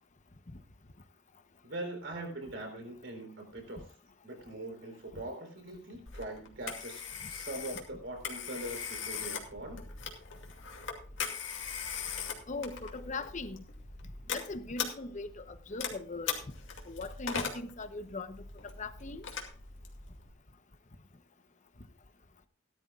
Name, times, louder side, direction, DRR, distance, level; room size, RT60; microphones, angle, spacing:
voice 1, 1.6-3.8 4.2-7.0 7.3-9.8, right 1 dB, 65° right, 3.8 m, -42 dB
Telephone, 6.1-20.3, left 6 dB, 70° left, 2.5 m, -40 dB
voice 2, 12.5-13.6 14.3-16.3 16.9-18.4 18.8-19.2, left 3 dB, 40° left, 0.9 m, -40 dB
18.0 x 12.0 x 2.4 m
head